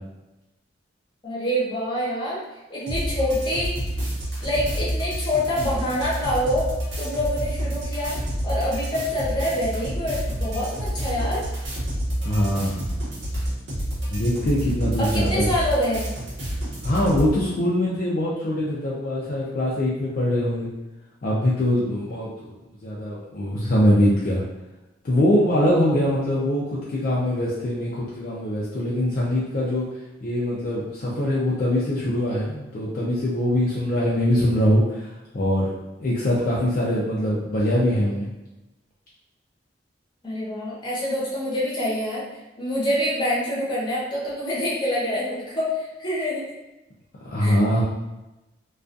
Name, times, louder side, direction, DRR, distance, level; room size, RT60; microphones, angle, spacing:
voice 1, 1.2-2.4 2.7-3.7 4.4-6.7 7.0-8.2 8.4-11.4 15.0-16.0 40.2-42.2 42.6-46.5 47.4-47.6, equal, 25° left, -7 dB, 0.8 m, -26 dB
sound 1, 2.9-17.3, right 1 dB, 80° right, 0.9 m, -29 dB
voice 2, 12.2-12.8 14.1-15.5 16.8-20.7 21.2-22.5 22.8-24.4 25.0-29.9 30.2-35.7 36.0-38.3 47.2-47.8, left 1 dB, 50° left, -7 dB, 0.4 m, -23 dB
2.3 x 2.3 x 2.5 m, 1.0 s
head